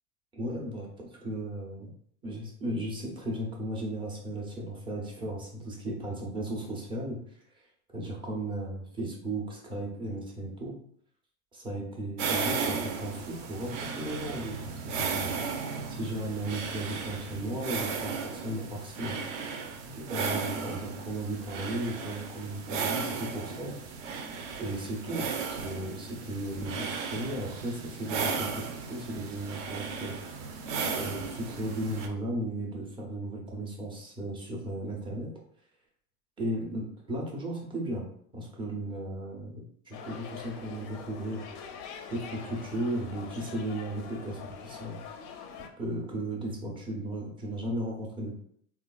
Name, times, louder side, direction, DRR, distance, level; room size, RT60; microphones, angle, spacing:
voice 1, 0.3-1.9 2.2-7.2 7.9-10.8 11.5-15.3 15.9-19.2 19.8-23.8 24.6-30.2 30.9-35.3 36.4-38.1 38.3-41.5 42.1-45.0 45.8-48.3, right 1 dB, 10° right, -2 dB, 0.5 m, -35 dB
sound 1, 12.2-32.1, right 5 dB, 55° right, 0.6 m, -35 dB
sound 2, 39.9-45.7, left 6 dB, 45° left, 0.4 m, -44 dB
3.3 x 2.3 x 2.2 m, 0.65 s
supercardioid pair, 120°, 47 cm